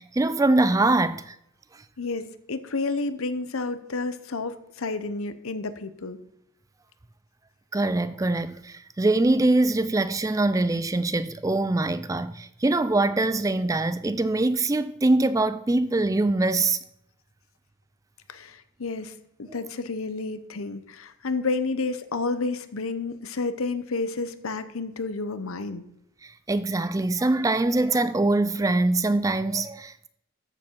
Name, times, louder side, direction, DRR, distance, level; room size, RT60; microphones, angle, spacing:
voice 1, 0.0-1.4 7.7-16.8 26.2-30.1, right 2 dB, 15° right, 0.3 m, -23 dB
voice 2, 2.0-6.2 18.3-19.1 19.4-25.9, left 3 dB, 85° left, 0.9 m, -30 dB
13.0 x 7.3 x 4.5 m
head